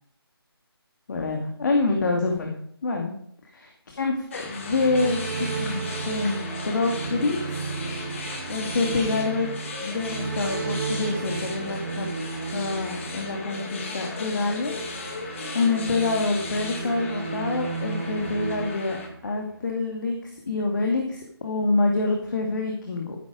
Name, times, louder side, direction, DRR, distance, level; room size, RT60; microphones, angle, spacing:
voice 1, 1.1-2.5 2.8-3.1 3.5-6.4 6.7-7.4 8.5-9.5 9.8-12.1 12.5-15.2 15.5-19.0 19.2-23.2, left 3 dB, 45° left, 2 dB, 2.2 m, -26 dB
sound 1, 4.3-19.1, left 3 dB, 30° left, 2.2 m, -36 dB
sound 2, 4.4-19.6, right 5 dB, 35° right, 1.4 m, -34 dB
13.5 x 9.8 x 5.0 m, 0.66 s
figure-of-eight pair, 155°, 13 cm